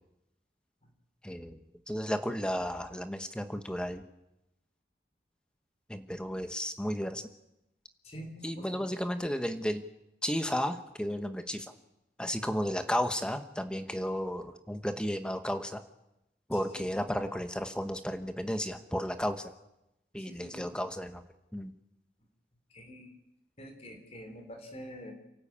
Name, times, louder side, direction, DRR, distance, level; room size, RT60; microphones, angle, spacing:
voice 1, 1.2-1.6 1.9-4.0 5.9-7.2 8.4-9.8 10.2-11.7 12.2-15.8 16.5-19.5 20.1-21.2 21.5-21.7, equal, 5° left, 8 dB, 1.2 m, -33 dB
voice 2, 8.0-8.8 16.8-16.9 20.2-20.6 22.7-23.1 23.6-25.1, equal, 35° left, 5 dB, 4.0 m, -46 dB
28.5 x 13.0 x 8.8 m, 0.90 s
head